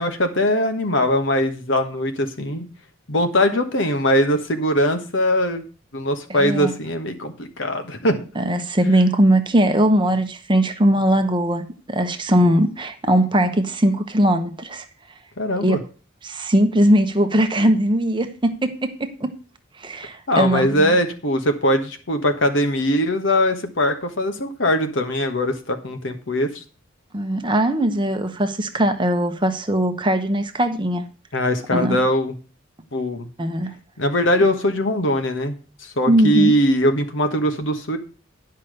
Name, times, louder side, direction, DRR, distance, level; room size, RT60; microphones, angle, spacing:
voice 1, 0.0-2.7 3.1-5.6 5.9-8.2 15.4-15.8 20.3-26.6 31.3-32.3 32.9-33.3 34.0-35.6 35.8-38.0, equal, 65° left, 7 dB, 1.4 m, -21 dB
voice 2, 6.3-6.7 8.4-14.8 15.6-15.8 16.2-19.3 19.8-20.9 27.1-31.0 31.7-32.0 33.4-33.7 36.1-36.5, right 1 dB, 25° right, 7 dB, 0.9 m, -20 dB
10.5 x 5.7 x 6.5 m, 0.37 s
head